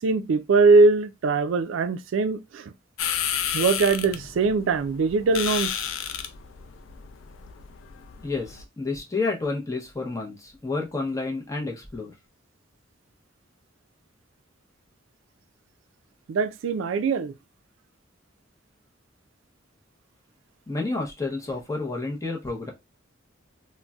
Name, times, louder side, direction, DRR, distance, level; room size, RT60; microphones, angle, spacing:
voice 1, 0.0-2.7 3.5-5.9 16.3-17.3, right 4 dB, 80° right, 0.4 m, -21 dB
sound 1, 3.0-8.6, left 9 dB, 90° left, 0.4 m, -32 dB
voice 2, 8.2-12.1 20.7-22.7, left 3 dB, 15° left, 0.7 m, -30 dB
3.8 x 2.1 x 2.2 m
head